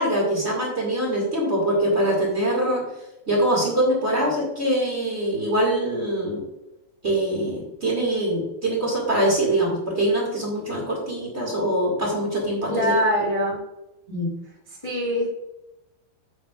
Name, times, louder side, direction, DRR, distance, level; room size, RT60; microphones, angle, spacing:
voice 1, 0.0-2.8 3.3-6.4 7.0-12.9 14.1-14.3, right 1 dB, 25° right, -3 dB, 1.8 m, -23 dB
voice 2, 12.7-13.6 14.8-15.3, equal, 30° left, -6 dB, 0.6 m, -23 dB
9.0 x 8.4 x 2.5 m, 0.94 s
omnidirectional pair, 4.2 m